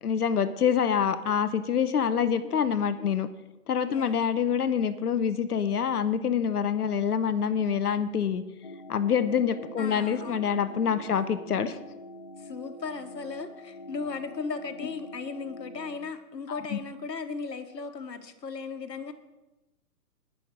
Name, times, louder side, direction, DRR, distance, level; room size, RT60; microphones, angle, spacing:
voice 1, 0.0-3.3 3.7-8.4 8.9-11.8 16.5-16.8, left 7 dB, 65° left, 12 dB, 1.0 m, -26 dB
voice 2, 3.9-4.4 9.8-10.7 11.1-11.3 12.4-19.1, left 4 dB, 90° left, 8 dB, 1.6 m, -37 dB
sound 1, 8.6-16.0, left 1 dB, 25° left, 0.4 m, -45 dB
19.0 x 6.5 x 4.8 m, 1.0 s
hypercardioid pair, 150°, 49 cm